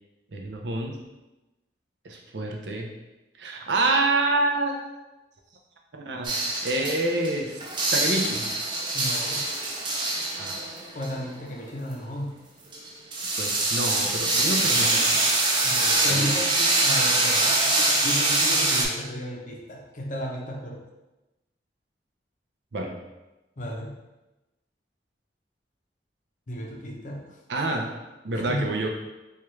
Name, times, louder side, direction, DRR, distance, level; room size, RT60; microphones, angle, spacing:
voice 1, 0.3-1.0 2.0-2.9 3.4-4.7 6.1-6.3 6.6-7.6 7.9-8.5 10.4-10.6 13.4-15.1 16.1-16.2 22.7-22.9 27.5-27.9 28.2-28.9, right 2 dB, 75° right, 1 dB, 0.6 m, -27 dB
sound 1, 6.2-7.3 7.6-11.6 12.7-18.8, right 2 dB, 25° right, 0.5 m, -24 dB
voice 2, 8.9-9.4 10.9-12.4 15.6-20.8 23.6-23.9 26.5-27.4 28.3-28.7, equal, 45° left, -1 dB, 0.6 m, -34 dB
4.4 x 2.4 x 3.1 m, 1.0 s
head